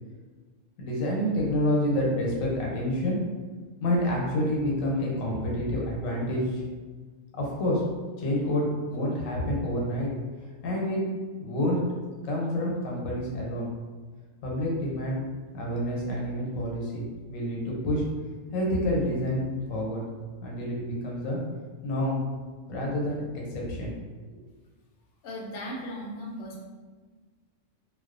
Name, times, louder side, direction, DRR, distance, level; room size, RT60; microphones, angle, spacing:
voice 1, 0.8-3.2 3.8-6.6 7.4-7.8 8.2-10.1 10.6-11.0 11.4-11.8 12.2-13.7 14.4-15.2 15.5-17.0 17.3-18.0 18.5-20.0 20.4-21.4 21.8-22.2 22.7-23.2 23.5-23.9, left 1 dB, 85° left, -3 dB, 1.0 m, -28 dB
voice 2, 25.2-26.7, equal, 65° left, -3 dB, 0.8 m, -37 dB
2.3 x 2.2 x 2.4 m, 1.4 s
omnidirectional pair, 1.3 m